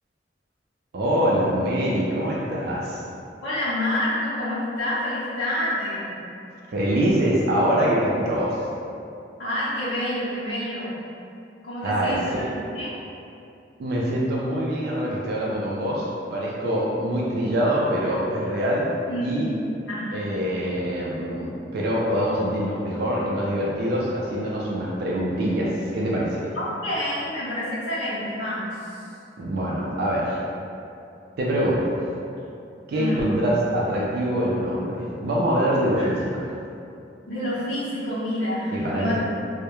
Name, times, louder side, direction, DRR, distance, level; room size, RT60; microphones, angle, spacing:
voice 1, 0.9-3.0 6.7-8.6 11.8-12.5 13.8-18.9 19.2-19.5 20.1-26.5 29.4-30.4 31.4-32.0 32.9-36.4 38.7-39.2, equal, 60° right, -5 dB, 0.3 m, -24 dB
voice 2, 3.4-6.2 9.4-11.0 11.6-12.5 12.7-13.0 19.1-19.5 19.9-20.1 26.5-29.0 32.9-33.4 36.0-36.1 37.3-39.2, left 1 dB, 80° left, -13 dB, 0.6 m, -28 dB
2.2 x 2.0 x 2.8 m, 2.6 s
head